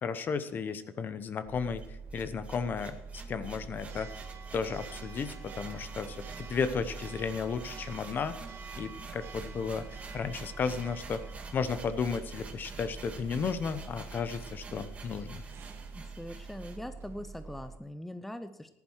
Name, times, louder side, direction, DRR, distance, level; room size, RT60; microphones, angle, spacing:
voice 1, 0.0-1.8 2.1-4.1 4.5-8.4 8.8-11.2 11.5-15.4, left 5 dB, 40° left, 12 dB, 1.0 m, -34 dB
Church bell, 1.5-17.8, right 4 dB, 50° right, 1.4 m, -45 dB
sound 1, 1.8-16.8, right 4 dB, 25° right, 2.1 m, -49 dB
voice 2, 15.9-18.8, left 1 dB, 5° left, 10 dB, 0.6 m, -42 dB
14.0 x 11.0 x 4.7 m, 0.84 s
cardioid pair, 115°, 5 cm